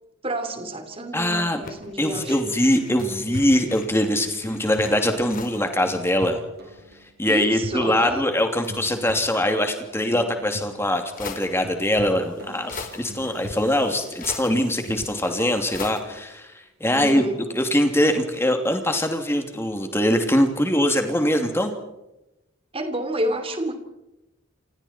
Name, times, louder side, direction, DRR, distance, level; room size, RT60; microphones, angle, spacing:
voice 1, 0.2-2.5 7.3-8.2 16.9-17.4 22.7-23.7, right 1 dB, 25° right, 7 dB, 3.2 m, -29 dB
voice 2, 1.1-1.6 2.0-6.4 7.2-17.2 17.5-21.7, left 1 dB, 10° left, 5 dB, 2.7 m, -22 dB
sound 1, 1.6-5.7 6.0-6.1 6.3-7.4 8.0-9.3 10.4-10.5 11.2-16.0, left 4 dB, 40° left, 3.2 m, -41 dB
sound 2, 2.8-16.2 19.8-19.9, equal, 50° right, 6.6 m, -41 dB
29.5 x 28.0 x 4.4 m, 0.96 s
head